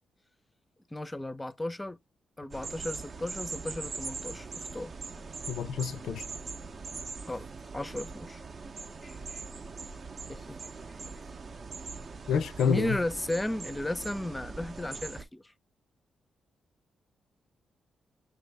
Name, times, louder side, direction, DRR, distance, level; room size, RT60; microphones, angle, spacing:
voice 1, 0.9-2.0 2.4-4.9 7.3-7.5 7.7-8.4 9.0-9.4 10.3-10.6 12.6-15.4, left 1 dB, 15° left, 0.5 m, -34 dB
sound 1, 2.5-15.2, right 4 dB, 50° right, 0.5 m, -41 dB
voice 2, 5.5-6.2 12.3-13.0, left 7 dB, 80° left, 0.4 m, -28 dB
6.0 x 2.6 x 3.3 m
cardioid pair, 65°, 0 cm